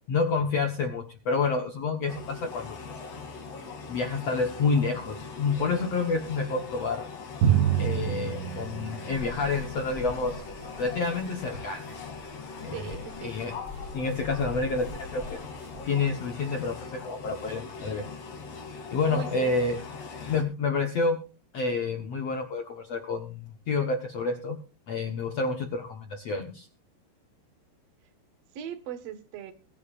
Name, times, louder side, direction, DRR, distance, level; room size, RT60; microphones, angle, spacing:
voice 1, 0.1-2.8 3.9-7.1 7.8-10.4 10.8-11.8 12.6-13.0 13.2-13.5 13.9-15.4 15.8-18.0 18.9-19.8 20.2-21.2 21.5-24.6 24.9-26.7, left 4 dB, 75° left, 5 dB, 1.5 m, -29 dB
sound 1, 2.1-20.4, left 5 dB, 40° left, 3.4 m, -41 dB
Drum, 7.4-9.8, right 10 dB, 85° right, 3.2 m, -27 dB
sound 2, 9.1-16.0, equal, 25° right, 2.4 m, -44 dB
voice 2, 12.7-13.3 19.1-19.5 28.5-29.5, right 10 dB, 55° right, 10 dB, 1.9 m, -38 dB
22.5 x 10.0 x 2.5 m, 0.34 s
omnidirectional pair, 5.0 m